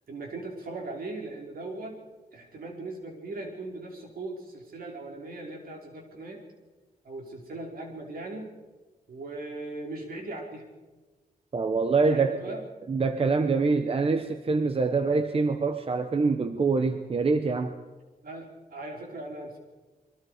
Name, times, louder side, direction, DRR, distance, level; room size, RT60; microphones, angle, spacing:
voice 1, 0.1-2.0 2.3-6.4 7.0-8.5 9.1-10.7 12.0-12.6 14.9-15.1 18.2-19.6, right 2 dB, 70° right, 0 dB, 5.2 m, -39 dB
voice 2, 11.5-12.5 12.9-17.8, right 4 dB, 40° right, 8 dB, 1.0 m, -25 dB
27.5 x 23.0 x 5.1 m, 1.2 s
wide cardioid pair, 150°, 16 cm